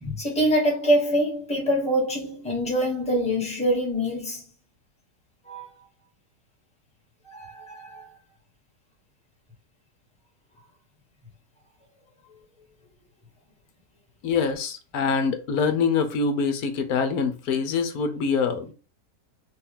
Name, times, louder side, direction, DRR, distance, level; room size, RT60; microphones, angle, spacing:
voice 1, 0.0-4.4 5.5-5.7 7.3-8.1, equal, 5° left, 1.3 m, -25 dB
voice 2, 14.2-18.7, left 5 dB, 70° left, 1.3 m, -25 dB
5.5 x 2.4 x 3.7 m
omnidirectional pair, 1.7 m